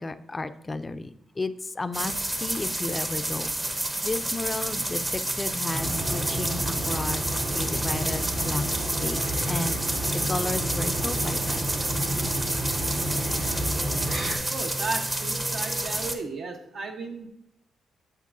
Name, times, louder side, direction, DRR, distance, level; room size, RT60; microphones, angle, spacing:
voice 1, 0.0-2.1 2.4-3.5 4.0-7.2 7.5-8.8 9.0-9.8 10.3-11.7, left 2 dB, 25° left, 11 dB, 0.4 m, -33 dB
sound 1, 1.9-16.1, right 1 dB, 20° right, 0.8 m, -29 dB
sound 2, 5.7-14.4, right 1 dB, 85° right, 2.4 m, -31 dB
voice 2, 14.5-17.3, right 3 dB, 65° right, 3 dB, 1.1 m, -34 dB
8.2 x 7.4 x 2.6 m, 0.78 s
cardioid pair, 80°, 0 cm